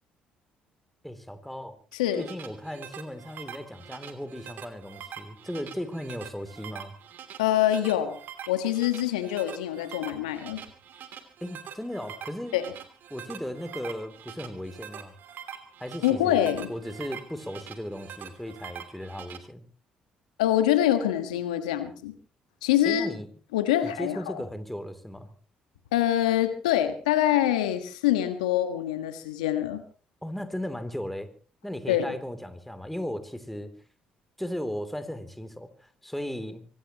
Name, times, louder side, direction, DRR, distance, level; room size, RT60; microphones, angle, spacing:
voice 1, 1.0-1.8 2.2-6.9 11.4-12.6 13.1-15.1 15.8-19.6 22.8-23.3 23.8-25.3 30.2-31.3 31.6-33.7 34.4-36.7, equal, 5° left, 9 dB, 3.1 m, -36 dB
voice 2, 1.9-2.2 7.4-8.2 8.5-10.6 12.5-12.6 16.0-16.7 20.4-22.1 22.6-23.1 23.5-24.4 25.9-29.8 31.9-32.1, left 12 dB, 85° left, 9 dB, 1.5 m, -25 dB
sound 1, 1.9-19.4, right 9 dB, 60° right, 2.8 m, -44 dB
24.5 x 18.0 x 3.0 m, 0.39 s
hypercardioid pair, 50°, 4 cm